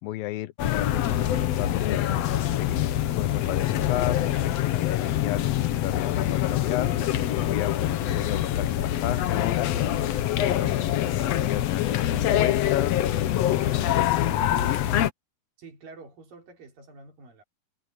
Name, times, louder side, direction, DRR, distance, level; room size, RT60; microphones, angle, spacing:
voice 1, 0.0-2.1 2.6-6.9 7.5-7.9 8.2-9.7 10.0-10.1 10.4-13.4 14.0-14.1 14.6-15.1, left 15 dB, 90° left, 2.6 m, -33 dB
sound 1, 0.6-15.1, left 12 dB, 65° left, 1.7 m, -25 dB
voice 2, 15.6-17.4, right 3 dB, 80° right, 5.7 m, -48 dB
omnidirectional pair, 3.9 m